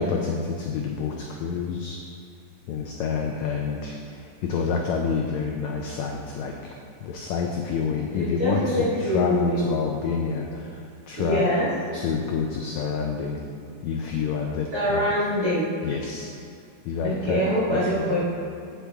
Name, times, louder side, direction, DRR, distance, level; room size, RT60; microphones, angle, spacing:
voice 1, 0.0-2.0 2.7-6.8 7.0-11.5 11.9-13.4 13.8-15.0 15.8-16.3 16.8-17.4 17.7-18.3, left 5 dB, 85° left, 1 dB, 1.6 m, -28 dB
voice 2, 8.1-9.7 11.2-11.7 14.7-15.7 17.0-18.3, equal, 45° right, -9 dB, 1.4 m, -24 dB
8.6 x 8.3 x 3.5 m, 2.5 s
omnidirectional pair, 3.9 m